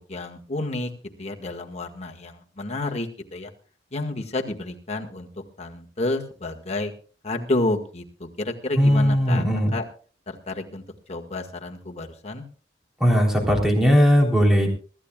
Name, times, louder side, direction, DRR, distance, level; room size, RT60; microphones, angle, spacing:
voice 1, 0.1-0.9 1.2-3.5 3.9-5.3 5.6-6.9 7.2-9.4 9.7-9.8 10.3-10.8 11.1-12.4, left 2 dB, 35° left, 1 dB, 1.9 m, -30 dB
voice 2, 8.8-9.7 13.0-14.7, equal, ahead, 1 dB, 3.6 m, -18 dB
25.0 x 13.5 x 2.4 m, 0.39 s
head